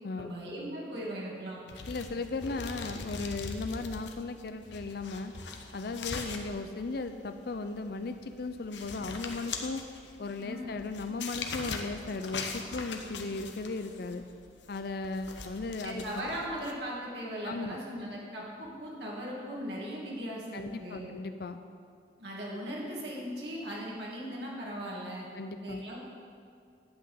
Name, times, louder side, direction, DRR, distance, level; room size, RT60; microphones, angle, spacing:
voice 1, 0.1-1.6 10.4-10.7 15.8-21.1 22.2-25.3 25.6-26.0, equal, 75° right, -4 dB, 2.3 m, -38 dB
sound 1, 1.7-16.7, left 4 dB, 85° left, 1.0 m, -42 dB
voice 2, 1.9-5.3 5.7-9.8 10.2-14.2 14.7-16.3 17.4-17.8 20.5-21.6 25.4-25.8, left 3 dB, 60° left, 8 dB, 0.5 m, -36 dB
10.5 x 5.9 x 8.5 m, 2.3 s
head